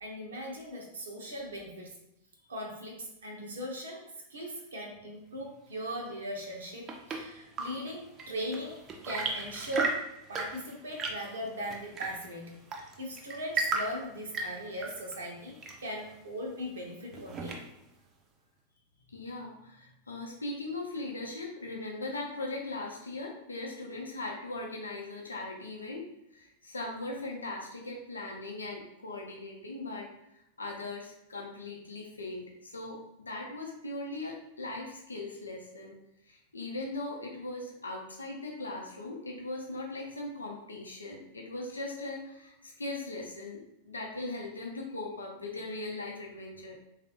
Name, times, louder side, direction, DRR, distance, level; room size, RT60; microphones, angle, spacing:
voice 1, 0.0-2.0 2.5-12.6 13.0-17.6, equal, 70° right, -1 dB, 0.7 m, -39 dB
Chirp tweet / Engine / Tap, 6.4-18.0, right 3 dB, 25° right, 0.5 m, -37 dB
voice 2, 19.1-30.1 30.6-36.0 36.3-46.7, left 2 dB, 75° left, -1 dB, 0.6 m, -39 dB
3.4 x 2.4 x 2.9 m, 0.82 s
figure-of-eight pair, 90°, 0 cm